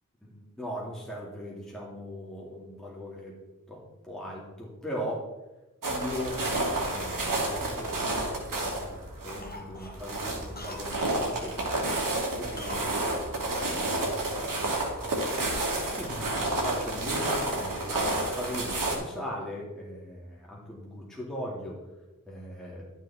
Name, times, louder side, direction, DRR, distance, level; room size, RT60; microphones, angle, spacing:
voice 1, 0.2-3.3 3.7-5.3 5.9-6.4 6.7-14.1 14.8-15.3 15.9-21.8 22.3-22.8, equal, ahead, -5 dB, 2.8 m, -39 dB
sound 1, 5.8-19.0, right 2 dB, 75° right, 2.8 m, -30 dB
Cough, 7.9-8.4 8.8-9.0 9.4-11.2 12.6-12.9 13.2-13.3, left 2 dB, 30° left, 1.5 m, -46 dB
12.0 x 7.4 x 4.4 m, 1.0 s
wide cardioid pair, 75°, 33 cm